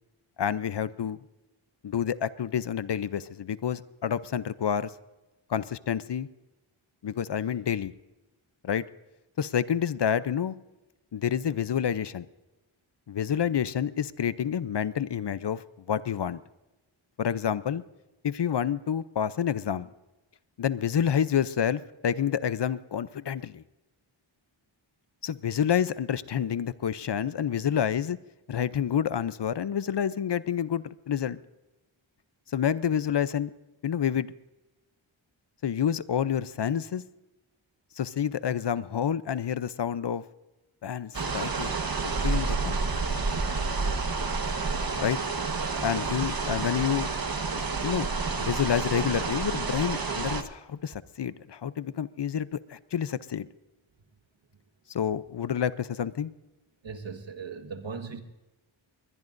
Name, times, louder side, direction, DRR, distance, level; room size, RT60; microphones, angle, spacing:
voice 1, 0.4-1.2 1.8-4.9 5.5-6.3 7.0-7.9 8.6-8.8 9.4-10.5 11.1-12.3 13.1-16.4 17.2-17.8 18.2-19.9 20.6-23.6 25.2-28.2 28.5-31.4 32.5-33.5 33.8-34.3 35.6-37.0 38.0-40.2 40.8-42.8 45.0-45.2 45.8-47.1 47.8-48.1 48.4-53.5 54.9-56.3, left 8 dB, 55° left, 16 dB, 0.7 m, -28 dB
sound 1, 41.1-50.4, right 4 dB, 45° right, 1.4 m, -29 dB
voice 2, 56.8-58.2, right 5 dB, 65° right, 6 dB, 1.7 m, -38 dB
22.0 x 20.5 x 2.6 m, 1.1 s
wide cardioid pair, 60°, 49 cm